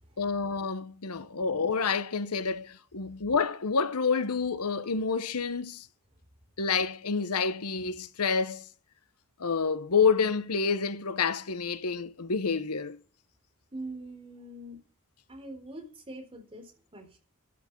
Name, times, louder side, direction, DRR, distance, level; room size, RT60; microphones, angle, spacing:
voice 1, 0.2-5.9 6.6-8.6 9.4-13.0, left 5 dB, 85° left, 1.0 m, -28 dB
voice 2, 13.7-14.8 15.3-17.2, right 1 dB, 25° right, 3.8 m, -43 dB
13.0 x 8.5 x 5.3 m
head